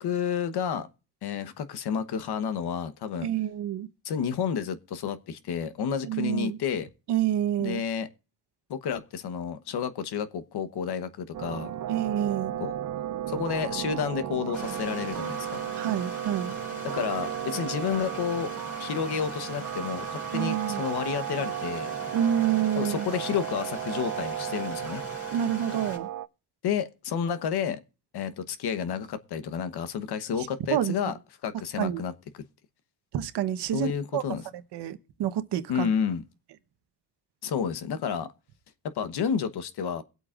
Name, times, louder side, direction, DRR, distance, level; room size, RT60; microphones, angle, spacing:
voice 1, 0.0-0.9 1.2-3.3 4.0-6.9 7.6-8.1 8.7-11.7 12.6-12.7 13.3-15.6 16.8-18.5 18.8-21.9 22.8-25.0 26.6-27.8 28.1-31.1 31.4-32.1 33.7-34.4 35.7-36.2 37.4-38.3 38.9-40.0, left 7 dB, 75° left, 1.1 m, -30 dB
voice 2, 3.2-3.9 6.0-6.6 7.1-7.8 11.9-12.5 15.7-16.5 20.3-20.8 22.1-23.1 25.3-26.1 30.4-31.0 31.8-32.0 33.1-34.2 34.7-35.9, right 10 dB, 80° right, 1.1 m, -28 dB
sound 1, 11.3-26.3, right 11 dB, 50° right, 0.6 m, -34 dB
Stream, 14.5-26.0, left 2 dB, 35° left, 3.5 m, -42 dB
22.5 x 8.2 x 2.5 m
cardioid pair, 80°, 40 cm